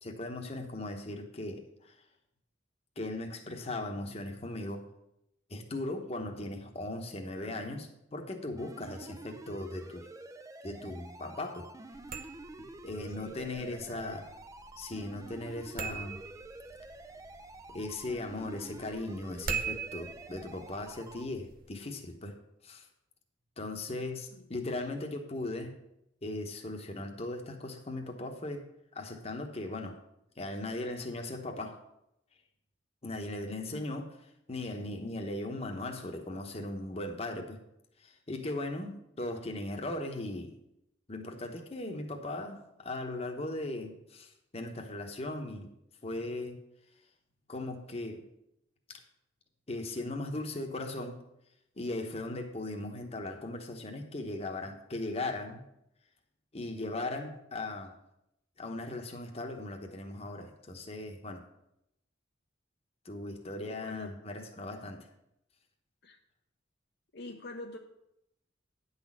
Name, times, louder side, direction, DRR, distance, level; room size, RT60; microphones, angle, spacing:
voice 1, 0.0-1.9 3.0-4.8 5.5-10.1 10.6-11.7 12.8-14.3 14.8-16.2 17.7-22.4 22.6-22.8 23.6-25.7 26.2-28.6 28.9-30.0 30.4-31.8 33.0-34.1 34.5-37.6 38.0-40.6 41.1-45.7 46.0-46.6 47.5-48.2 49.7-51.2 51.8-55.6 56.5-57.9 58.6-61.4 63.0-65.1, left 2 dB, 30° left, 3 dB, 1.0 m, -38 dB
voice 2, 7.4-7.8 13.2-14.0 24.3-24.5 33.7-33.9 63.7-64.1 66.0-66.2 67.1-67.8, left 2 dB, 55° left, 3 dB, 0.7 m, -46 dB
sound 1, 8.6-21.3, right 2 dB, 15° right, 0.4 m, -48 dB
sound 2, 11.9-21.7, right 6 dB, 45° right, 0.7 m, -43 dB
9.8 x 4.1 x 7.4 m, 0.81 s
head